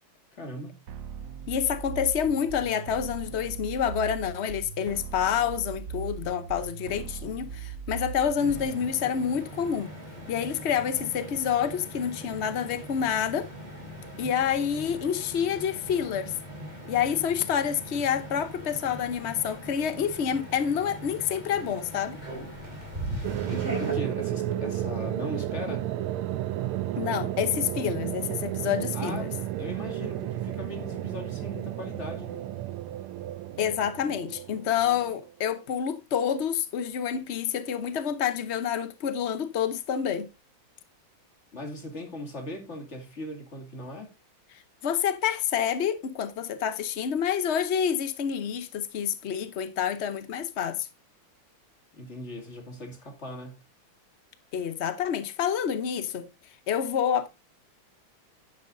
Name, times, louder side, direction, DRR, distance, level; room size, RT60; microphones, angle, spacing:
voice 1, 0.3-0.8 23.8-25.9 28.9-29.3 29.6-32.5 41.5-44.1 51.9-53.6, left 1 dB, 35° left, 2.7 m, -39 dB
sound 1, 0.9-8.9, right 6 dB, 60° right, 0.9 m, -39 dB
voice 2, 1.5-9.9 10.3-13.5 14.2-16.3 16.8-22.2 27.0-29.3 33.6-40.3 44.8-50.9 54.5-56.3 56.7-57.3, left 8 dB, 70° left, 0.6 m, -28 dB
sound 2, 8.3-23.9, equal, 20° right, 4.8 m, -40 dB
sound 3, 23.2-35.3, right 12 dB, 90° right, 1.6 m, -32 dB
10.5 x 10.5 x 2.6 m
omnidirectional pair, 2.3 m